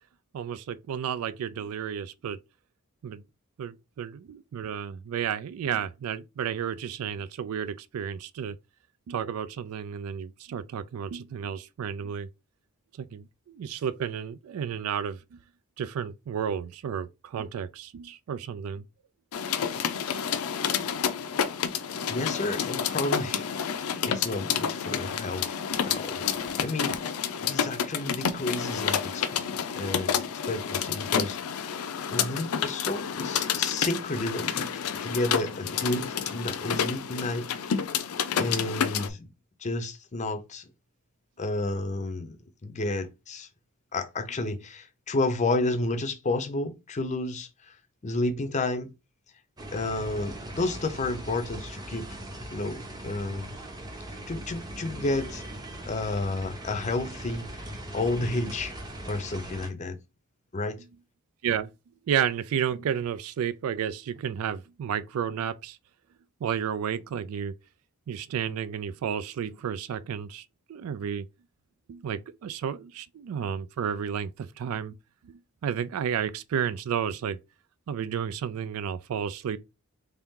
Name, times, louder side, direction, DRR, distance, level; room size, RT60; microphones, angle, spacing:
voice 1, 0.3-2.4 3.0-3.2 3.6-8.6 9.1-12.3 13.0-15.4 15.8-18.8 21.1-21.2 61.4-61.7 62.1-65.8 66.4-67.5 68.1-70.4 70.7-71.3 71.9-75.0 75.2-77.4 77.9-79.6, right 8 dB, 80° right, 0.3 m, -32 dB
sound 1, 19.3-39.1, left 7 dB, 85° left, 0.5 m, -29 dB
voice 2, 22.1-23.5 24.0-27.0 27.4-30.2 30.5-31.7 32.1-37.5 38.4-39.3 39.6-40.6 41.4-42.4 42.6-43.5 43.9-47.8 48.0-48.9 49.7-52.2 52.5-53.5 54.3-55.4 55.9-57.6 57.9-58.7 59.1-60.0 60.5-60.8, left 2 dB, 35° left, 0.6 m, -31 dB
sound 2, 49.6-59.7, right 1 dB, 20° right, 0.8 m, -40 dB
3.4 x 2.8 x 3.6 m
head